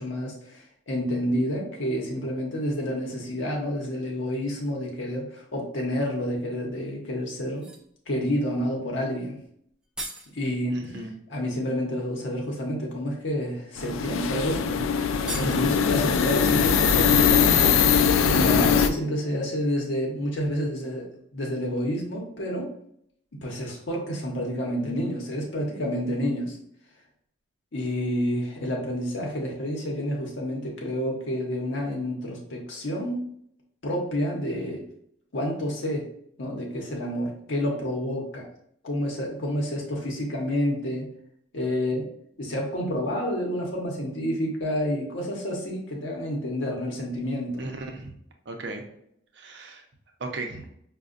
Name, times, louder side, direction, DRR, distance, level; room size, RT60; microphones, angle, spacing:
voice 1, 0.0-7.7 8.1-9.4 10.3-10.8 11.3-14.8 15.4-17.9 18.3-21.0 21.3-22.7 23.4-26.6 27.7-33.2 33.8-34.8 35.3-36.1 36.4-38.5 38.8-41.1 41.5-42.0 42.4-47.6, equal, 70° left, -1 dB, 0.8 m, -29 dB
sound 1, 7.4-7.9 9.4-9.5 9.7-10.4 11.8-11.9 12.5-12.7 13.6-13.7 14.1-14.2 14.5-14.6 15.1-15.8 16.9-19.0 19.3-19.4, right 1 dB, 5° right, 0.3 m, -41 dB
voice 2, 10.7-11.1 47.6-48.1 48.5-48.9 49.3-49.8 50.2-50.7, right 2 dB, 55° right, 3 dB, 0.6 m, -36 dB
sound 2, 13.8-18.9, left 7 dB, 90° left, 0.3 m, -21 dB
5.2 x 2.2 x 2.4 m, 0.69 s
head